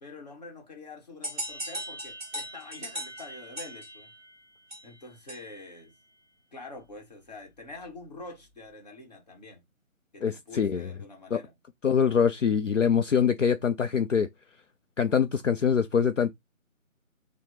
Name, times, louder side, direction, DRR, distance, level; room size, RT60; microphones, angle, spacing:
voice 1, 0.0-4.1 4.8-5.9 6.5-9.7 10.1-11.6, left 2 dB, 30° left, 1.1 m, -46 dB
sound 1, 1.2-5.7, right 1 dB, 10° right, 1.5 m, -39 dB
voice 2, 10.2-10.9 11.3-11.4 11.8-14.3 15.0-16.3, left 7 dB, 60° left, 0.5 m, -24 dB
4.1 x 2.1 x 3.0 m
figure-of-eight pair, 160°, 42 cm